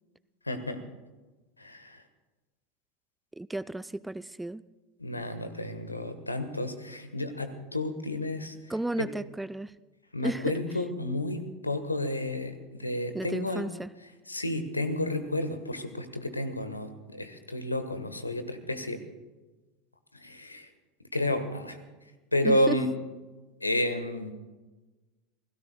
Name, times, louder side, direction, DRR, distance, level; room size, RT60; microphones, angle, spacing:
voice 1, 0.4-0.8 1.6-2.0 5.0-8.6 9.0-9.1 10.1-13.7 14.3-19.0 20.1-20.7 21.1-21.8 22.3-22.9 23.6-24.3, left 1 dB, 85° left, 9 dB, 1.3 m, -31 dB
voice 2, 3.4-4.6 8.7-9.7 10.2-10.5 13.1-13.9 22.4-22.8, right 2 dB, 5° right, 17 dB, 0.4 m, -33 dB
28.0 x 17.0 x 2.3 m, 1.2 s
figure-of-eight pair, 80°, 0 cm